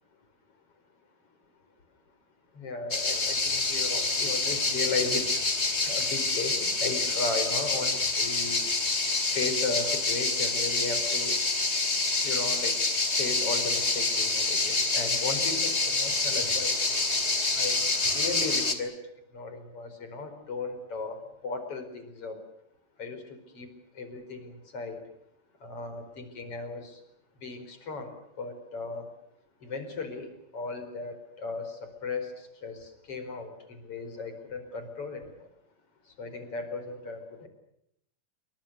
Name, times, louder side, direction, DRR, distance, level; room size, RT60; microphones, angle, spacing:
voice 1, 2.6-5.2 5.9-8.6 9.3-11.3 12.2-12.7 13.2-16.8 17.6-18.9 19.3-22.4 23.0-23.2 23.6-23.7 24.0-25.0 25.6-27.0 27.4-28.1 28.4-29.1 29.6-32.3 32.6-35.2 36.2-37.5, left 3 dB, 40° left, 8 dB, 5.4 m, -36 dB
sound 1, 2.9-18.7, left 3 dB, 20° left, 2.4 m, -27 dB
28.0 x 25.0 x 6.5 m, 0.75 s
omnidirectional pair, 4.2 m